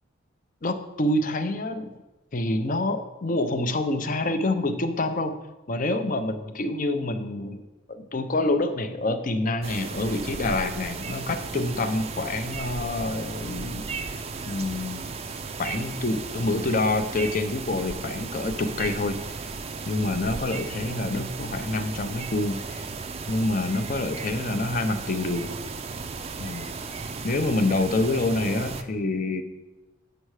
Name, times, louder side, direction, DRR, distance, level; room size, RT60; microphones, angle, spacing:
voice 1, 0.6-1.9 2.3-5.3 5.7-13.9 14.5-15.1 15.6-19.5 19.9-22.8 23.3-25.5 26.4-26.7 27.2-29.4, left 2 dB, 40° left, 9 dB, 0.6 m, -27 dB
sound 1, 9.6-28.8, right 4 dB, 30° right, 0.4 m, -35 dB
7.6 x 6.4 x 4.8 m, 1.1 s
head